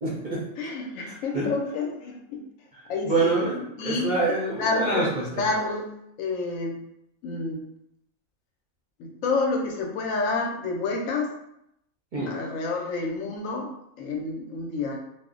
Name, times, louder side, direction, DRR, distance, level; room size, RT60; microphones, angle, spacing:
voice 1, 0.0-0.4 1.1-1.5 2.7-5.3 12.1-12.3, right 2 dB, 50° right, -6 dB, 0.6 m, -26 dB
voice 2, 0.6-2.4 2.9-3.4 3.8-4.1 4.6-5.9 6.2-6.8 7.2-7.6 9.0-11.3 12.3-13.7 14.0-15.0, left 3 dB, 70° left, 1 dB, 0.9 m, -29 dB
2.4 x 2.1 x 3.6 m, 0.78 s
omnidirectional pair, 1.5 m